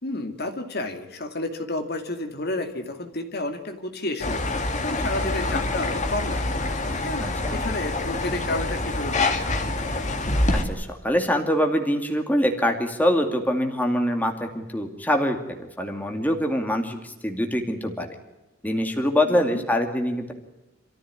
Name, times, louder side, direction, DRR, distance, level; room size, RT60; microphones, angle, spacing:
voice 1, 0.0-7.2 7.5-9.4 19.2-19.6, left 2 dB, 50° left, 5 dB, 2.5 m, -31 dB
sound 1, 4.2-10.6, left 2 dB, 35° left, 2.4 m, -26 dB
voice 2, 7.2-7.6 10.5-15.4 15.8-18.1 18.6-20.3, equal, 10° left, 3 dB, 2.4 m, -24 dB
27.0 x 14.5 x 9.7 m, 1.0 s
head